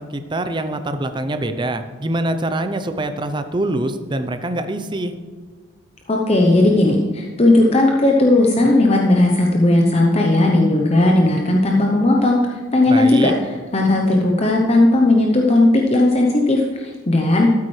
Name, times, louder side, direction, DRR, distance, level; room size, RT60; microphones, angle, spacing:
voice 1, 0.0-5.1 12.9-13.3, right 1 dB, 25° right, 9 dB, 0.6 m, -24 dB
voice 2, 6.1-17.5, left 2 dB, 30° left, 0 dB, 0.8 m, -16 dB
13.0 x 8.5 x 3.3 m, 1.5 s
head